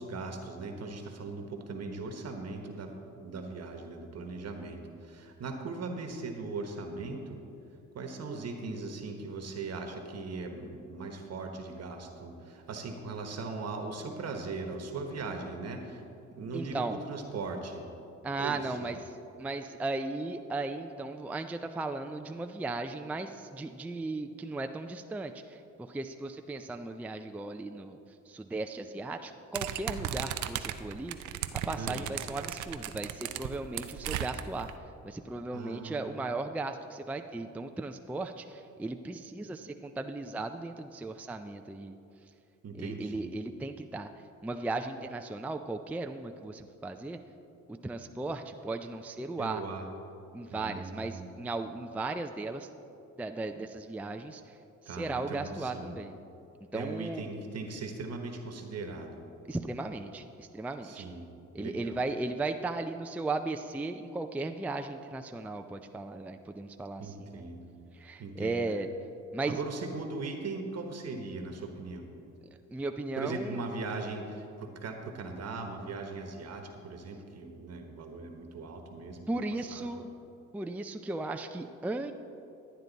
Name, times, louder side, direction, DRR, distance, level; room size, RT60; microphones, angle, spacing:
voice 1, 0.0-7.4 7.9-16.0 16.3-17.8 18.4-19.0 31.8-32.1 35.5-36.4 42.6-43.3 49.4-49.8 50.5-51.3 54.9-55.9 56.7-59.2 60.8-61.3 61.6-62.0 67.0-67.7 68.2-68.6 69.5-72.0 73.2-79.3 79.7-80.0, right 3 dB, 55° right, 4 dB, 1.2 m, -39 dB
voice 2, 16.5-17.0 18.2-19.0 19.4-28.0 28.3-31.2 31.7-34.7 35.0-42.0 42.8-44.1 44.4-47.2 47.7-49.6 50.3-52.7 53.2-54.6 54.8-56.2 56.7-57.3 59.5-61.1 61.5-67.4 67.9-68.9 69.3-69.6 72.7-73.6 79.3-80.1 80.5-82.1, right 2 dB, 5° right, 6 dB, 0.4 m, -36 dB
sound 1, 29.5-34.7, right 11 dB, 75° right, 0.5 m, -36 dB
11.5 x 9.2 x 4.0 m, 2.7 s
cardioid pair, 90°, 30 cm